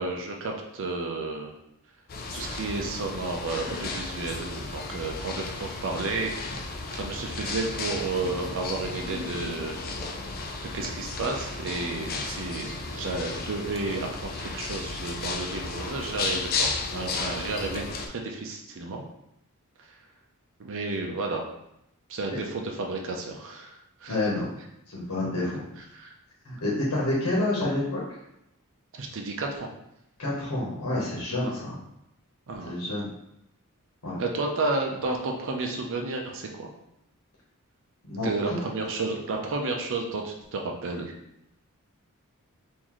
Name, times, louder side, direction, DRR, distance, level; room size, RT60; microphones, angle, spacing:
voice 1, 0.0-1.5 2.3-9.8 10.7-19.0 20.6-21.4 22.1-23.7 24.0-24.2 25.9-26.1 28.9-29.7 31.4-31.5 32.5-32.7 34.2-36.7 38.2-41.1, right 3 dB, 60° right, 1 dB, 0.5 m, -32 dB
sound 1, 2.1-18.1, left 3 dB, 40° left, 0.4 m, -34 dB
voice 2, 24.1-24.5 24.9-25.7 26.4-28.0 30.2-31.8 32.6-33.1 34.0-34.2 38.0-38.6, left 2 dB, 85° left, -6 dB, 1.1 m, -28 dB
3.8 x 2.6 x 3.0 m, 0.82 s
head